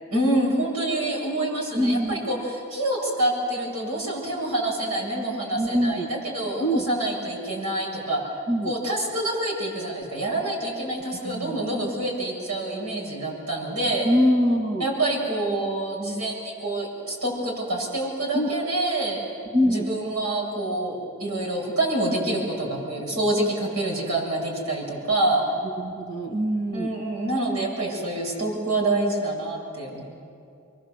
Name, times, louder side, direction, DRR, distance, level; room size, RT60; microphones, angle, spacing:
voice 1, 0.1-8.2 8.6-14.1 14.8-19.2 19.6-25.4 26.7-30.0, right 1 dB, 85° right, -2 dB, 7.9 m, -27 dB
voice 2, 1.7-2.2 5.5-6.1 6.6-6.9 8.5-8.8 11.2-11.7 14.0-14.8 18.3-18.5 19.5-19.9 25.8-26.9, equal, 50° right, 3 dB, 1.7 m, -23 dB
25.0 x 24.0 x 8.0 m, 2.5 s
head